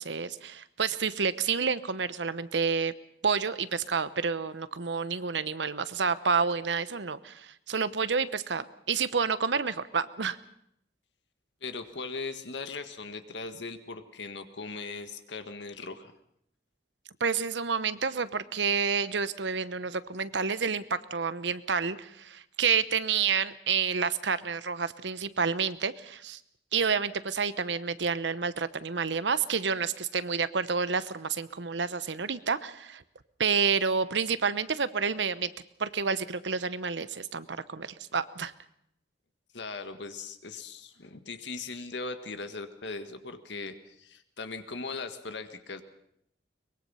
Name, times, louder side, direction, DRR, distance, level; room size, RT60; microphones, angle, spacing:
voice 1, 0.0-2.9 3.2-10.4 17.2-26.4 26.7-33.0 33.4-35.5 35.8-38.5, right 5 dB, 85° right, 14 dB, 1.0 m, -29 dB
voice 2, 11.6-16.1 39.5-45.8, left 3 dB, 85° left, 8 dB, 1.8 m, -39 dB
23.0 x 21.5 x 5.6 m, 0.73 s
head